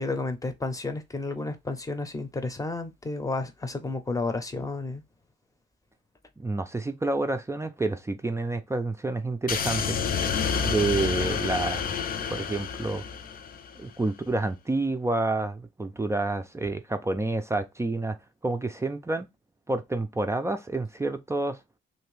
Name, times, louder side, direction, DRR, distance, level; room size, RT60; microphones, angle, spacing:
voice 1, 0.0-5.0, left 3 dB, 15° left, 0.8 m, -31 dB
voice 2, 6.4-10.0 10.6-13.0 13.8-18.2 18.4-19.3 19.7-21.6, right 2 dB, 15° right, 0.5 m, -29 dB
sound 1, 9.5-13.8, left 6 dB, 45° left, 0.5 m, -29 dB
2.9 x 2.6 x 3.2 m
cardioid pair, 90°, 20 cm